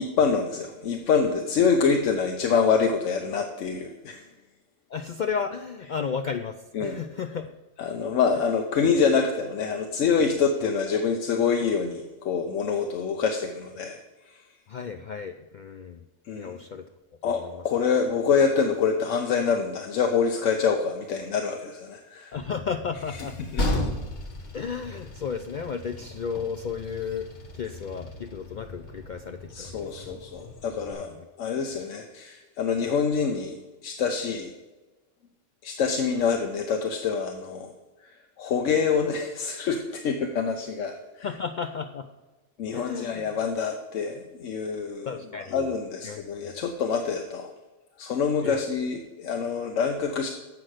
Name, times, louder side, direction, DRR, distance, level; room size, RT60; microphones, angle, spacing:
voice 1, 0.0-4.2 6.7-7.0 7.8-14.0 16.3-16.6 17.2-22.3 23.5-23.7 29.5-31.1 31.4-34.5 35.6-37.7 38.4-41.3 42.6-45.1 45.5-47.5 48.0-50.3, left 6 dB, 85° left, 4 dB, 1.1 m, -26 dB
voice 2, 4.9-7.5 8.3-8.5 14.7-16.0 16.4-16.9 17.2-17.6 22.3-23.4 24.5-30.1 30.9-31.1 41.2-42.1 42.7-43.2 45.1-45.7 46.0-46.5 48.4-48.6, left 6 dB, 65° left, 7 dB, 0.4 m, -34 dB
Train, 22.3-30.9, left 1 dB, 40° left, 1.1 m, -35 dB
7.8 x 5.9 x 6.3 m, 1.2 s
omnidirectional pair, 1.3 m